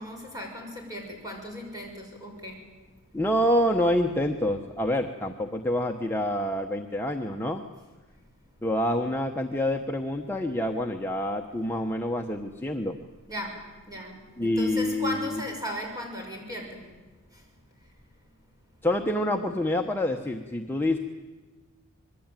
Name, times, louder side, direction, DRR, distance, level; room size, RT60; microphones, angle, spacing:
voice 1, 0.0-2.6 13.3-16.8, equal, 15° right, 1 dB, 6.4 m, -37 dB
voice 2, 3.1-7.6 8.6-12.9 14.4-15.4 18.8-21.0, left 1 dB, 10° left, 2 dB, 1.0 m, -27 dB
26.0 x 21.5 x 9.1 m, 1.2 s
head